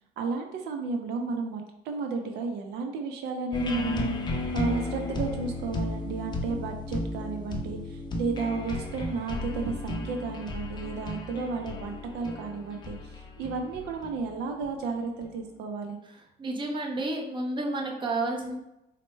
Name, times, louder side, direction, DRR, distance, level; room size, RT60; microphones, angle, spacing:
voice 1, 0.2-16.0, right 4 dB, 80° right, 4 dB, 0.5 m, -33 dB
sound 1, 3.5-15.3, left 2 dB, 25° left, 0.5 m, -34 dB
voice 2, 16.4-18.6, right 2 dB, 30° right, 1 dB, 0.7 m, -30 dB
4.2 x 2.1 x 3.1 m, 0.87 s
cardioid pair, 110°, 17 cm